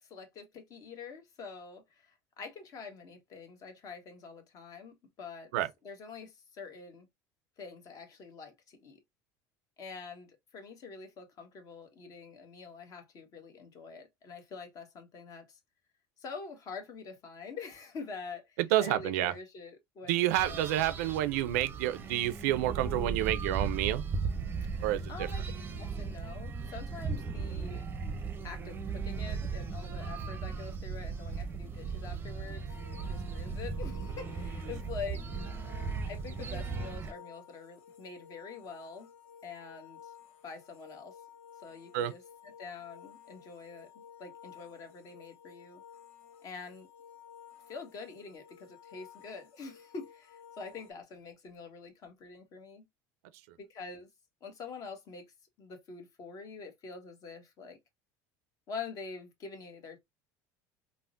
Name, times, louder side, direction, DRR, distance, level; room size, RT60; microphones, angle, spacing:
voice 1, 0.0-5.5 5.8-7.1 7.6-9.0 9.8-15.6 16.2-20.9 24.7-25.5 25.8-27.8 28.4-32.7 33.0-35.2 35.8-39.1 39.4-40.1 40.4-41.1 41.6-45.8 46.4-46.9 47.7-52.8 53.6-54.1 54.4-55.3 55.6-57.8 58.7-60.0, left 4 dB, 45° left, 1.0 m, -46 dB
voice 2, 18.7-19.3 20.1-24.0 24.8-25.3 41.9-42.1, right 13 dB, 90° right, 0.4 m, -29 dB
sound 1, 20.3-37.1, right 5 dB, 25° right, 0.5 m, -37 dB
sound 2, 32.7-50.9, left 8 dB, 80° left, 0.9 m, -54 dB
3.5 x 2.0 x 2.4 m
supercardioid pair, 115°, 8 cm